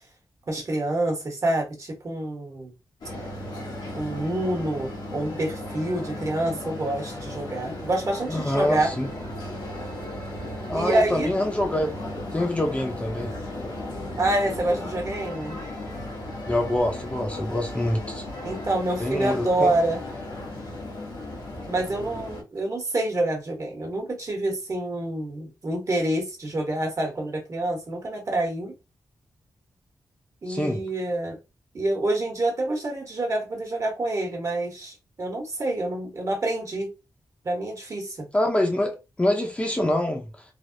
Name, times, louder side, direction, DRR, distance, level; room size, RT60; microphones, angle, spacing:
voice 1, 0.5-2.7 3.9-8.9 10.7-11.3 14.2-15.6 18.4-20.0 21.7-28.7 30.4-31.4 31.7-36.9 37.4-38.3, right 1 dB, 45° right, 1.2 m, -27 dB
sound 1, 3.0-22.4, left 1 dB, 80° left, 1.1 m, -35 dB
voice 2, 8.3-9.1 10.7-11.9 12.3-13.3 16.5-18.2 19.0-19.7 30.5-30.8 38.3-40.4, left 1 dB, 15° left, 0.6 m, -25 dB
3.3 x 2.0 x 2.6 m
wide cardioid pair, 90°, 8 cm